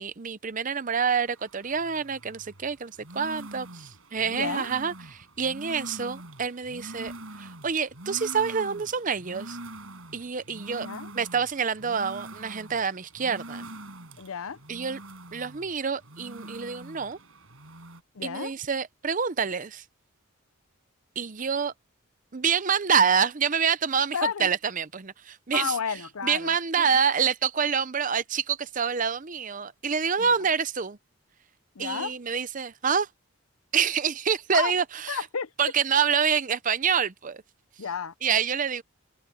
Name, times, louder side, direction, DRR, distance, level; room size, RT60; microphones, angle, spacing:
voice 1, 0.0-7.1 7.4-9.6 10.1-10.9 11.1-13.7 14.7-15.0 15.3-17.2 18.2-19.8 21.2-21.7 22.3-25.8 26.2-31.0 31.8-33.1 33.7-35.2 35.6-37.4 38.2-38.8, right 6 dB, 35° right, 0.6 m, -27 dB
sound 1, 1.1-18.0, right 1 dB, 75° right, 5.4 m, -44 dB
voice 2, 4.3-4.7 10.8-11.1 14.2-14.6 18.1-18.5 24.1-24.5 25.5-26.9 30.2-30.3 31.7-32.1 34.5-34.7 35.1-35.5 37.8-38.1, left 6 dB, 80° left, 0.7 m, -32 dB
head